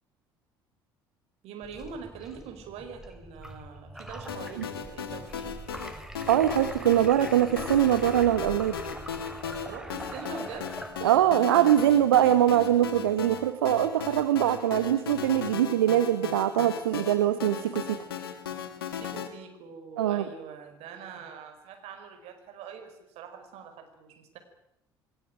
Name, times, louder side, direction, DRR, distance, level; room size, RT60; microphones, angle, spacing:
voice 1, 1.4-5.5 9.7-10.8 18.9-24.4, right 6 dB, 55° right, 6 dB, 5.0 m, -43 dB
sound 1, 1.6-11.4, equal, 5° right, 3.5 m, -43 dB
sound 2, 4.3-19.3, left 7 dB, 75° left, 2.4 m, -37 dB
voice 2, 6.3-8.8 11.0-18.0 20.0-20.2, right 11 dB, 75° right, 11 dB, 1.2 m, -23 dB
28.0 x 18.0 x 9.0 m, 0.86 s
figure-of-eight pair, 55°, 12 cm